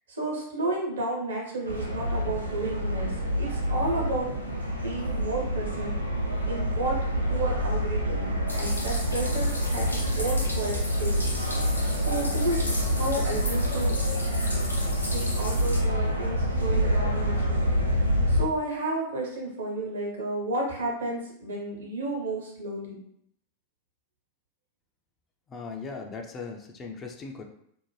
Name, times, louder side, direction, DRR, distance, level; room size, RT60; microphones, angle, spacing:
voice 1, 0.1-4.3 4.8-5.9 6.4-9.9 10.1-11.2 12.1-14.0 15.1-17.7 18.3-23.0, right 2 dB, 65° right, -1 dB, 0.9 m, -32 dB
sound 1, 1.7-18.4, equal, 85° right, 0.5 m, -27 dB
sound 2, 8.5-15.8, left 1 dB, 85° left, 0.5 m, -36 dB
voice 2, 25.5-27.4, left 4 dB, 25° left, 3 dB, 0.4 m, -38 dB
2.6 x 2.1 x 3.1 m, 0.70 s
figure-of-eight pair, 90°, 0 cm